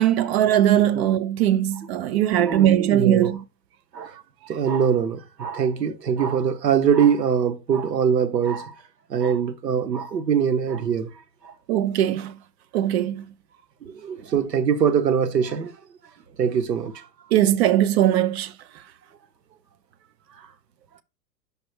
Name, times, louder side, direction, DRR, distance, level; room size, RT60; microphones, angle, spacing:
voice 1, 0.0-3.4 11.7-12.3 12.7-13.2 17.3-18.5, right 11 dB, 40° right, 0.6 m, -20 dB
voice 2, 2.4-3.3 3.9-4.1 4.5-8.7 9.1-11.1 11.4-11.5 13.8-15.7 16.4-17.1, right 7 dB, 75° right, 1.1 m, -23 dB
5.1 x 5.1 x 4.8 m
figure-of-eight pair, 95°, 50 cm